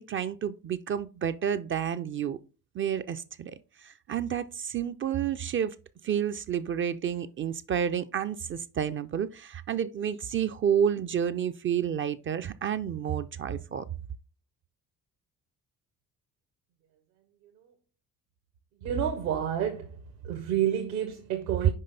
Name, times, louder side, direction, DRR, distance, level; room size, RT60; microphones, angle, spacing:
voice 1, 0.0-2.4 2.7-5.8 6.0-13.8, right 8 dB, 30° right, 0.4 m, -30 dB
voice 2, 18.8-19.9 20.2-21.7, right 9 dB, 70° right, 1.0 m, -29 dB
5.5 x 5.1 x 3.9 m
figure-of-eight pair, 45°, 47 cm